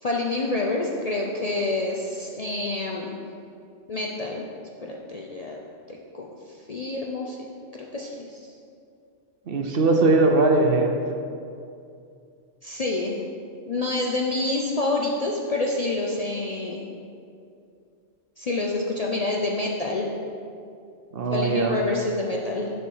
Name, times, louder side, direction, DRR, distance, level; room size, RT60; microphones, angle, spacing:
voice 1, 0.0-3.2 3.9-4.5 4.8-5.6 5.9-6.3 6.7-7.4 7.9-8.5 12.6-13.2 13.7-16.8 18.4-20.1 21.3-22.7, left 2 dB, 45° left, -1 dB, 0.5 m, -27 dB
voice 2, 9.5-10.9 21.1-21.7, right 2 dB, 55° right, 3 dB, 0.8 m, -20 dB
6.6 x 6.6 x 4.6 m, 2.5 s
omnidirectional pair, 1.2 m